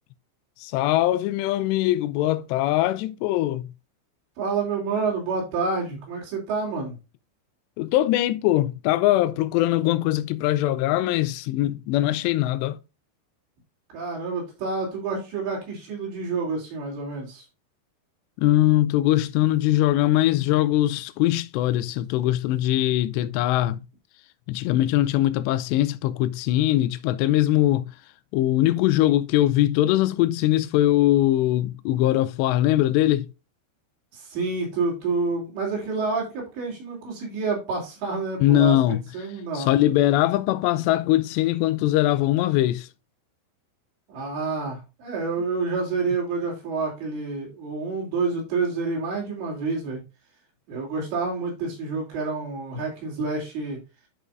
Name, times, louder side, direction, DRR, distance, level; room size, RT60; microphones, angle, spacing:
voice 1, 0.6-3.7 7.8-12.8 18.4-23.8 24.5-27.9 28.3-33.3 38.4-39.0 39.6-42.9, left 14 dB, 80° left, 2.6 m, -21 dB
voice 2, 4.4-7.0 13.9-17.5 34.1-38.8 39.1-39.7 44.1-50.0 50.7-53.8, right 4 dB, 75° right, 5.3 m, -28 dB
12.5 x 5.0 x 2.5 m
omnidirectional pair, 5.3 m